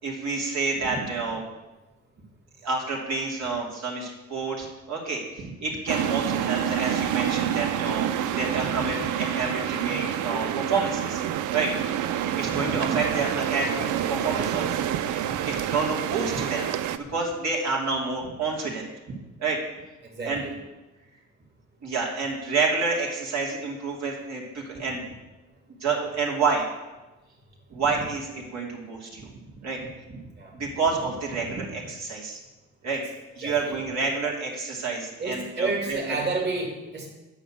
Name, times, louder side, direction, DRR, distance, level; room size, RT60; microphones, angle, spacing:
voice 1, 0.0-1.4 2.6-8.1 8.4-11.2 11.5-11.7 12.3-14.9 15.3-16.7 16.9-19.6 20.2-20.4 21.8-25.0 25.8-26.7 27.7-29.2 29.6-29.8 30.1-30.2 30.5-32.4 32.8-33.0 33.3-36.2, right 4 dB, 65° right, -3 dB, 2.9 m, -29 dB
sound 1, 5.9-17.0, right 10 dB, 85° right, 0.6 m, -28 dB
voice 2, 35.2-37.1, right 3 dB, 35° right, -1 dB, 2.5 m, -29 dB
8.9 x 6.4 x 7.5 m, 1.1 s
cardioid pair, 90°, 30 cm